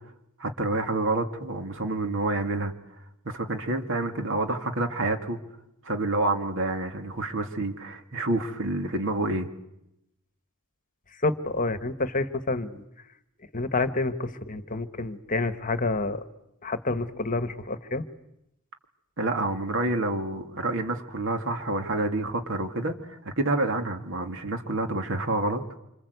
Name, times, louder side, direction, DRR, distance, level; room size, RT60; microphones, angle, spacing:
voice 1, 0.4-2.7 3.2-5.4 5.8-9.5 19.2-25.6, right 2 dB, 60° right, 6 dB, 2.5 m, -28 dB
voice 2, 11.2-12.8 13.5-16.2 16.6-18.0, left 3 dB, 40° left, 10 dB, 1.4 m, -28 dB
27.5 x 26.5 x 8.1 m, 0.85 s
head